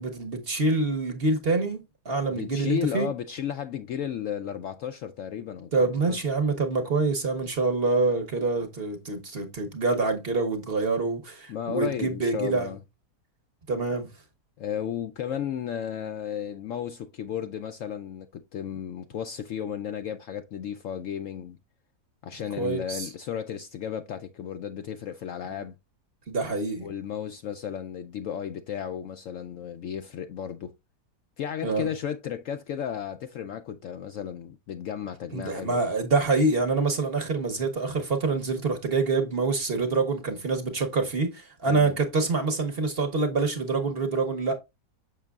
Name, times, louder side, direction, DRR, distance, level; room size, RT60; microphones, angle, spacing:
voice 1, 0.0-3.1 5.7-12.7 13.7-14.1 22.6-23.1 26.3-26.9 31.6-31.9 35.3-44.6, right 3 dB, 45° right, 1.0 m, -26 dB
voice 2, 2.3-5.7 6.1-6.2 11.5-12.8 14.6-21.6 22.2-25.7 26.8-30.7 31.4-35.8 41.7-42.0, left 9 dB, 70° left, 0.8 m, -34 dB
6.6 x 6.1 x 2.3 m
omnidirectional pair, 1.7 m